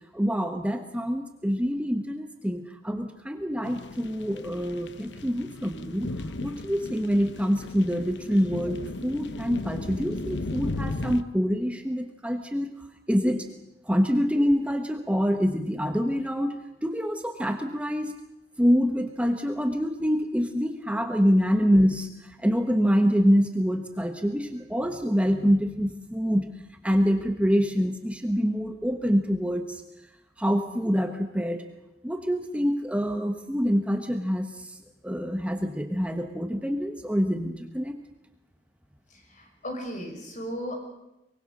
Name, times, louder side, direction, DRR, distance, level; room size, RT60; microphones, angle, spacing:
voice 1, 0.1-6.1 6.4-13.5 13.8-18.1 18.6-26.5 26.8-29.8 30.4-31.6 32.0-38.0, equal, 5° right, 5 dB, 1.3 m, -26 dB
sound 1, 3.6-11.2, left 2 dB, 85° left, 1.1 m, -36 dB
voice 2, 39.1-40.9, equal, 45° left, 3 dB, 6.5 m, -36 dB
24.0 x 23.0 x 6.6 m, 0.91 s
head